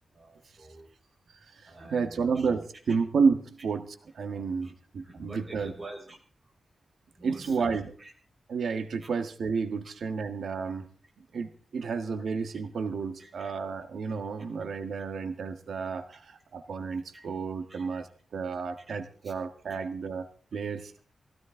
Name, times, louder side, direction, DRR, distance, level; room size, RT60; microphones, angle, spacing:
voice 1, 0.1-0.9 1.7-2.5 4.3-4.7 5.0-6.2 7.2-7.7 8.0-8.1 9.0-9.1 13.2-13.5 17.1-17.3 17.7-18.0 18.5-18.6 19.2-19.3 20.8-20.9, right 2 dB, 30° right, 0 dB, 6.3 m, -47 dB
voice 2, 1.3-5.7 7.2-7.9 8.5-10.9 11.2-18.1 18.3-20.9, right 5 dB, 85° right, 8 dB, 1.5 m, -31 dB
22.0 x 17.0 x 3.8 m, 0.42 s
wide cardioid pair, 165°, 0 cm